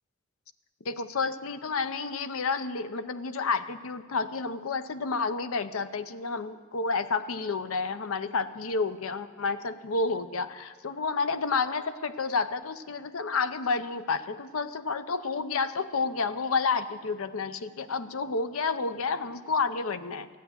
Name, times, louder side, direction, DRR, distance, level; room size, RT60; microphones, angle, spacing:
voice 1, 0.8-20.3, left 4 dB, 85° left, 12 dB, 0.7 m, -30 dB
14.0 x 9.0 x 7.8 m, 1.5 s
head